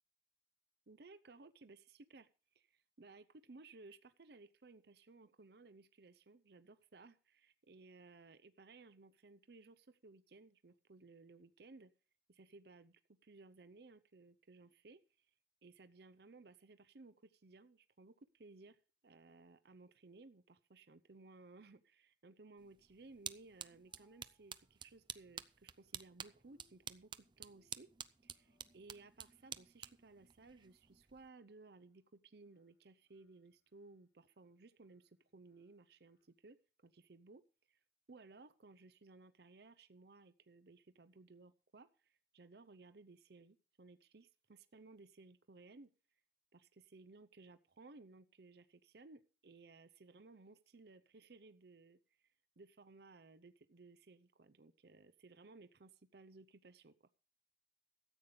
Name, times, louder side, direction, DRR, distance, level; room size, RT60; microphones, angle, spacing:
voice 1, 0.9-2.3 2.5-11.9 12.3-15.3 15.6-18.8 19.0-27.9 28.2-36.6 36.8-37.4 37.7-37.8 38.1-45.9 46.5-57.0, right 3 dB, 65° right, 12 dB, 0.7 m, -60 dB
sound 1, 22.6-31.3, right 8 dB, 25° right, 0.5 m, -52 dB
sound 2, 23.4-36.2, left 3 dB, 70° left, 8.0 m, -84 dB
13.5 x 8.5 x 5.1 m, 0.36 s
head